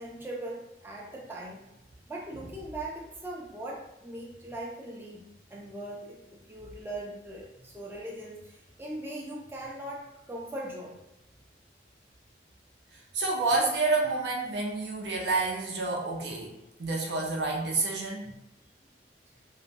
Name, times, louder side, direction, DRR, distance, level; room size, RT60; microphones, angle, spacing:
voice 1, 0.0-1.6 2.1-10.9 16.8-17.1 18.2-18.4, right 1 dB, 10° right, -3 dB, 0.4 m, -40 dB
voice 2, 13.1-16.5 16.8-18.3, right 3 dB, 70° right, -2 dB, 0.7 m, -28 dB
2.6 x 2.1 x 2.9 m, 0.91 s
head